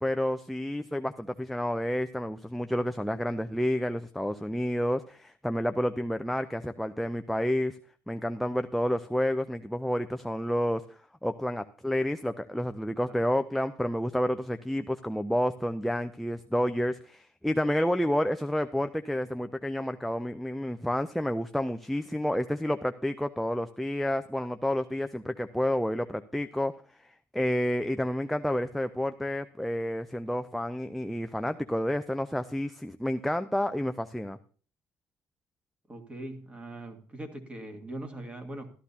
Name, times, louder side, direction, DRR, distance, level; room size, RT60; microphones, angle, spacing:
voice 1, 0.0-7.8 8.1-10.8 11.2-26.7 27.0-27.1 27.3-34.4, equal, ahead, 8 dB, 0.4 m, -30 dB
voice 2, 35.9-38.7, right 1 dB, 20° right, 4 dB, 1.9 m, -41 dB
13.0 x 11.5 x 2.7 m, 0.41 s
cardioid pair, 100°, 6 cm